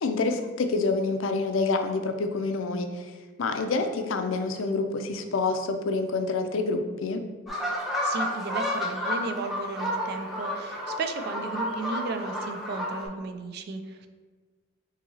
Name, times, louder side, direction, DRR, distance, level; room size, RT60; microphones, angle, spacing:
voice 1, 0.0-3.1 3.4-7.2, left 3 dB, 85° left, 6 dB, 0.4 m, -27 dB
sound 1, 7.5-13.1, equal, ahead, 0.7 m, -31 dB
voice 2, 8.0-14.1, right 3 dB, 55° right, 7 dB, 0.3 m, -34 dB
5.5 x 2.8 x 2.7 m, 1.4 s
head